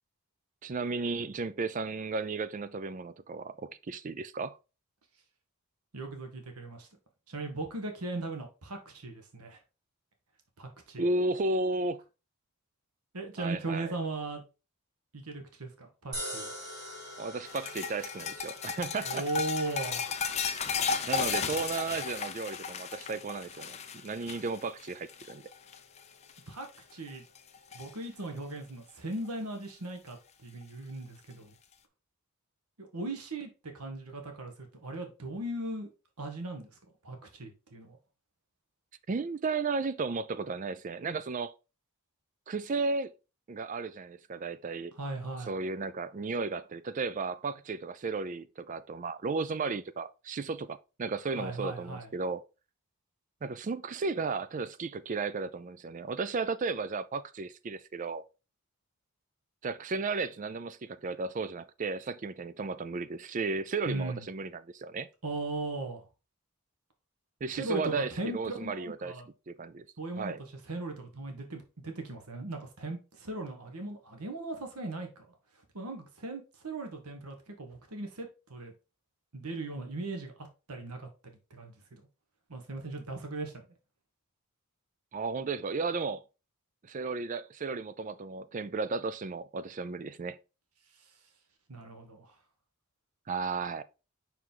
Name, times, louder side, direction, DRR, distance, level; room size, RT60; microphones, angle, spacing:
voice 1, 0.6-4.6 11.0-12.0 13.4-14.0 17.2-19.2 21.1-25.4 39.1-41.5 42.5-43.1 43.5-44.9 45.5-52.4 53.4-58.2 59.6-65.1 67.4-69.1 69.5-69.9 70.2-70.4 85.1-86.2 86.8-90.4 93.3-93.8, right 4 dB, 35° right, 0.4 m, -34 dB
voice 2, 5.9-6.9 7.3-9.6 10.6-11.1 13.1-14.4 15.1-16.5 19.0-20.2 26.5-27.2 27.7-30.2 30.4-31.5 32.8-35.9 36.2-36.7 37.0-38.0 45.0-45.6 51.3-52.1 63.8-64.2 65.2-66.0 67.5-69.3 70.0-70.4 70.6-75.1 75.7-78.7 79.3-82.0 82.5-83.7 91.0-91.1 91.7-92.3, right 2 dB, 85° right, 1.3 m, -38 dB
sound 1, 16.1-28.5, equal, 15° right, 3.3 m, -48 dB
sound 2, 17.5-26.0 26.3-26.7 27.1-27.9 29.3-29.4 30.6-30.7, left 6 dB, 30° left, 0.5 m, -35 dB
5.5 x 4.7 x 3.8 m
head